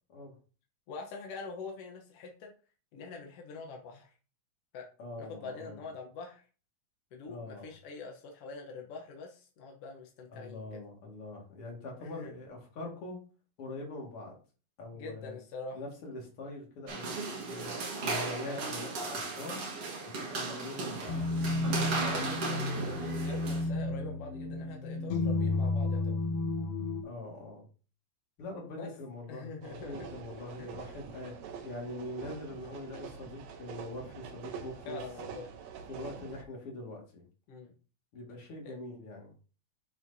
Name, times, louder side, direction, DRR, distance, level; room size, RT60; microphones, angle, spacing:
voice 1, 0.9-2.5 2.9-4.1 4.7-4.9 5.2-6.4 7.1-10.8 12.0-12.3 14.9-15.8 18.4-18.7 22.0-26.1 28.8-28.9 29.3-29.9 30.6-30.7 34.9-35.5 37.5-37.7 38.6-38.8, left 4 dB, 70° left, 2 dB, 1.4 m, -44 dB
voice 2, 5.0-5.8 7.3-7.7 10.3-13.2 13.6-14.4 14.8-15.4 15.7-19.6 20.0-21.3 27.0-27.6 28.4-31.4 31.6-35.0 35.9-37.2 38.1-39.3, left 2 dB, 45° left, 0 dB, 2.6 m, -43 dB
sound 1, 16.9-23.6, right 3 dB, 50° right, 2.1 m, -36 dB
sound 2, 21.1-27.0, left 2 dB, 90° left, 2.7 m, -32 dB
sound 3, 29.6-36.4, right 6 dB, 70° right, 1.8 m, -45 dB
9.7 x 4.9 x 2.7 m, 0.36 s
omnidirectional pair, 4.0 m